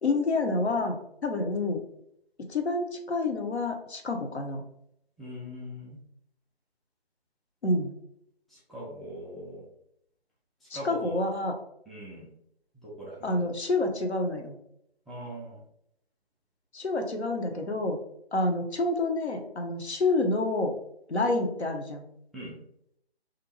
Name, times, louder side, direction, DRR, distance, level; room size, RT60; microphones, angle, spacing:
voice 1, 0.0-1.8 2.5-4.6 7.6-7.9 10.7-11.6 13.2-14.6 16.7-18.0 18.3-20.7 21.1-22.1, left 2 dB, 85° left, 3 dB, 0.7 m, -28 dB
voice 2, 5.2-6.0 8.5-9.7 10.6-11.2 11.9-12.3 12.7-13.5 15.1-15.6 22.3-22.6, equal, ahead, -7 dB, 0.3 m, -41 dB
2.5 x 2.1 x 2.9 m, 0.73 s
figure-of-eight pair, 155°, 32 cm